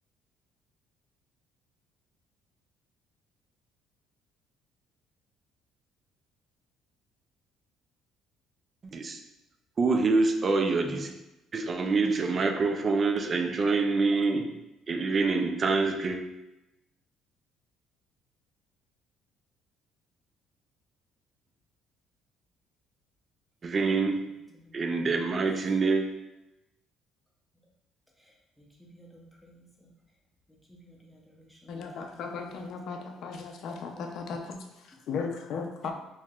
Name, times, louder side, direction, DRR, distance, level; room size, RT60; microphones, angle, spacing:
voice 1, 9.8-11.1 11.5-14.4 14.9-16.2 23.6-24.2 24.7-26.0, right 4 dB, 30° right, 5 dB, 0.4 m, -26 dB
voice 2, 23.7-24.1 24.5-24.8 28.2-28.7 28.9-29.9 30.5-32.7, right 1 dB, ahead, -2 dB, 0.7 m, -57 dB
voice 3, 31.7-35.9, left 5 dB, 55° left, 3 dB, 0.5 m, -36 dB
4.5 x 2.9 x 2.3 m, 0.95 s
cardioid pair, 145°, 0 cm